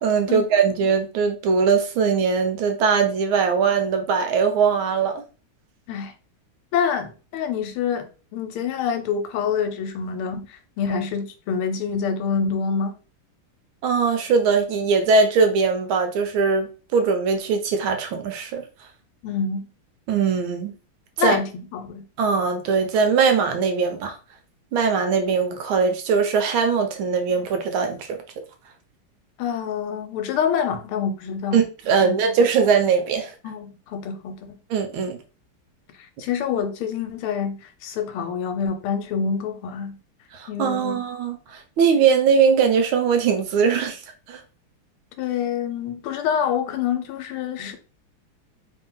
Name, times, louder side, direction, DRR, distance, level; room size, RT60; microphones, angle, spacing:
voice 1, 0.0-5.2 13.8-18.6 20.1-20.7 21.2-21.4 22.2-24.2 24.7-28.1 31.5-33.3 34.7-35.2 40.3-44.0 44.3-44.4, right 5 dB, 75° right, 1.5 m, -21 dB
voice 2, 6.7-13.0 19.2-19.7 21.2-22.0 29.4-31.6 32.0-32.1 33.4-34.4 36.2-40.0 40.5-41.0 45.2-47.8, left 7 dB, 90° left, 1.6 m, -26 dB
3.5 x 2.8 x 3.8 m
omnidirectional pair, 2.3 m